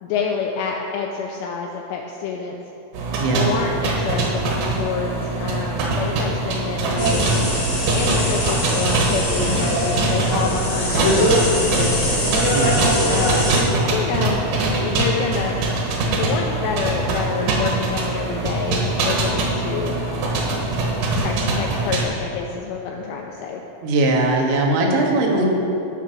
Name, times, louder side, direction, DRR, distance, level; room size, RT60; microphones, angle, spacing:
voice 1, 0.0-2.6 3.3-7.3 7.9-12.1 13.1-13.5 13.9-14.4 14.8-15.7 16.2-20.6 21.2-23.6, left 6 dB, 90° left, 0 dB, 2.5 m, -28 dB
sound 1, 2.9-22.1, right 2 dB, 70° right, 2.4 m, -23 dB
voice 2, 3.2-3.6 12.5-12.9 23.8-25.5, right 2 dB, 85° right, 0 dB, 3.8 m, -20 dB
sound 2, 7.0-13.6, equal, 65° left, 0.8 m, -22 dB
16.0 x 6.1 x 4.5 m, 2.9 s
omnidirectional pair, 5.7 m